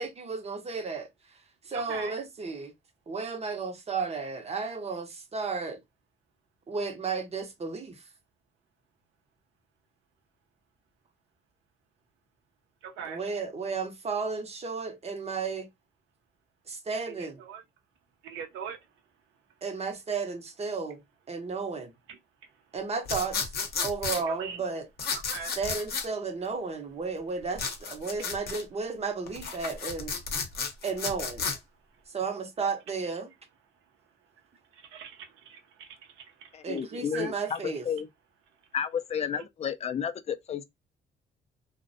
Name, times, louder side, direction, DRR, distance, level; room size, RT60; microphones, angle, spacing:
voice 1, 0.0-2.7 3.1-5.8 6.7-8.1 13.0-15.7 16.7-17.4 19.6-21.0 21.3-21.9 22.7-23.5 23.8-24.9 25.6-30.1 30.8-31.5 32.1-33.3 36.6-37.9, right 4 dB, 35° right, 0.6 m, -33 dB
voice 2, 1.7-2.1 12.8-13.2 17.1-17.6 18.2-18.8 22.1-22.2 24.1-24.6 25.3-25.6 34.7-36.6 36.9-37.3, right 7 dB, 90° right, 0.5 m, -41 dB
sound 1, 23.1-24.2 25.0-26.1 27.6-28.6 29.3-31.6, left 5 dB, 55° left, 0.7 m, -32 dB
voice 3, 36.5-38.1 38.7-40.6, left 8 dB, 35° left, 0.3 m, -32 dB
2.5 x 2.1 x 2.5 m
cardioid pair, 80°, 19 cm